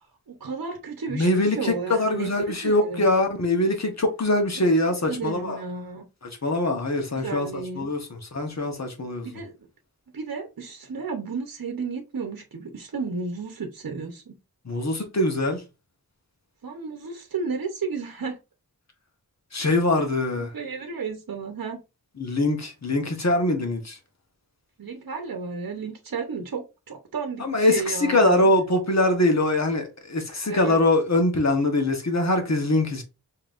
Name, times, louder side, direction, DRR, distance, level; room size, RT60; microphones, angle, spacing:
voice 1, 0.3-2.3 2.6-3.1 5.1-6.0 7.1-7.9 9.2-9.5 10.1-14.3 16.6-18.4 20.4-21.8 24.8-28.5 30.5-30.8, right 5 dB, 65° right, 0.9 m, -33 dB
voice 2, 1.1-5.6 6.2-9.3 14.6-15.6 19.5-20.5 22.2-24.0 27.4-33.0, left 2 dB, 45° left, 1.1 m, -23 dB
5.1 x 2.9 x 2.5 m
wide cardioid pair, 85°, 37 cm